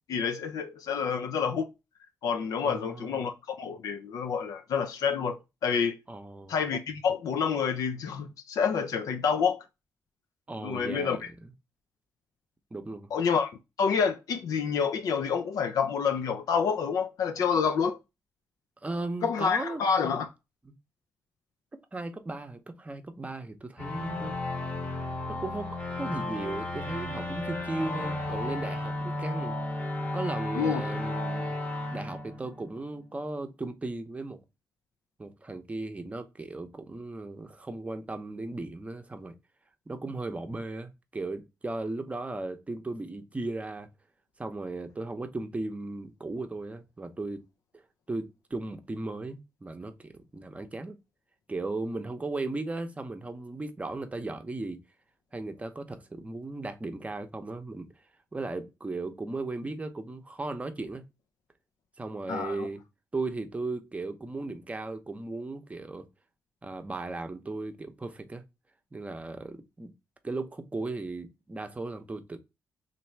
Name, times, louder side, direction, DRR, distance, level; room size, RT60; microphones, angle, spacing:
voice 1, 0.1-1.7 2.2-5.9 6.5-9.6 10.6-11.3 13.1-18.0 19.2-20.3 30.6-30.8 62.3-62.7, left 6 dB, 80° left, 0.4 m, -28 dB
voice 2, 2.6-3.2 6.1-6.5 10.5-11.5 12.7-13.1 18.8-19.8 20.6-20.7 21.9-24.3 25.3-29.6 30.1-31.5 31.9-34.4 35.2-39.3 39.9-43.9 44.4-47.4 48.1-51.0 51.5-54.8 55.3-57.9 58.3-61.0 62.0-62.8 63.1-66.1 66.6-68.4 68.9-69.9 70.2-72.4, right 2 dB, 20° right, 0.7 m, -36 dB
sound 1, 23.8-33.1, left 2 dB, 25° left, 0.9 m, -34 dB
3.1 x 2.6 x 4.4 m
cardioid pair, 80°, 6 cm